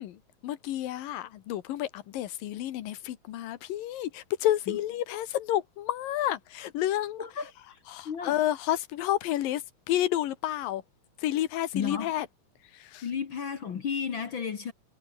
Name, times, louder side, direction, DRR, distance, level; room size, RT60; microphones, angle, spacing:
voice 1, 0.0-7.2 7.9-10.8 11.2-12.3 12.7-13.0, left 13 dB, 90° left, 3.0 m, -30 dB
voice 2, 7.2-8.4 11.7-12.1 13.0-14.7, left 6 dB, 45° left, 1.8 m, -33 dB
omnidirectional pair, 3.9 m